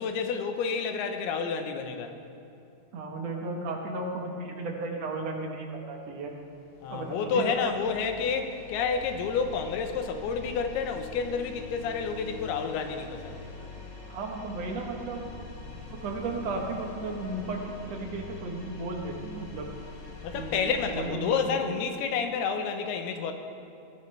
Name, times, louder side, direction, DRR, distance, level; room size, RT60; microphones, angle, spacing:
voice 1, 0.0-2.1 6.8-13.5 20.2-23.3, left 5 dB, 90° left, 6 dB, 3.0 m, -30 dB
voice 2, 2.9-6.3 6.9-7.6 14.1-15.3 15.9-19.7 20.3-21.6, right 3 dB, 60° right, 1 dB, 1.8 m, -34 dB
sound 1, 6.1-21.1, left 4 dB, 55° left, 3.6 m, -44 dB
20.5 x 15.0 x 3.4 m, 2.6 s
omnidirectional pair, 4.5 m